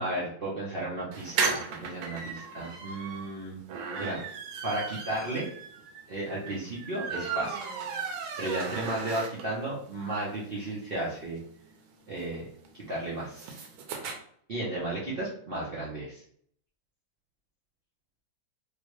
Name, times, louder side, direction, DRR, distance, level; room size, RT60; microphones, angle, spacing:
voice 1, 0.0-3.6 4.0-4.2 4.6-5.5 6.1-7.6 8.0-11.4 12.1-12.5 12.7-13.6 14.5-16.2, right 1 dB, 60° right, -7 dB, 0.5 m, -34 dB
sound 1, 1.1-9.7 10.1-10.2 10.4-10.5 10.8-14.2, right 5 dB, 85° right, 1.4 m, -35 dB
3.2 x 2.9 x 3.1 m, 0.62 s
omnidirectional pair, 2.1 m